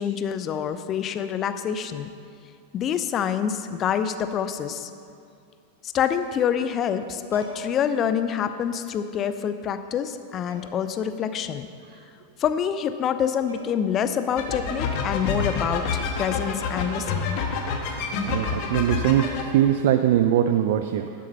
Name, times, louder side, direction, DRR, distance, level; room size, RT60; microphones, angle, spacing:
voice 1, 0.0-2.1 2.7-4.9 5.8-11.7 12.4-17.4, left 8 dB, 30° left, 11 dB, 0.6 m, -26 dB
sound 1, 7.3-7.9 9.2-9.3 10.5-10.9 13.5-13.9 14.2-14.3 16.2-16.3 16.6-17.2 19.1-19.3, equal, 80° right, 2.9 m, -43 dB
sound 2, 14.4-19.4, left 5 dB, 45° left, 1.3 m, -28 dB
voice 2, 18.3-21.1, right 11 dB, 55° right, 8 dB, 0.4 m, -21 dB
11.0 x 7.5 x 5.4 m, 2.3 s
figure-of-eight pair, 90°, 0 cm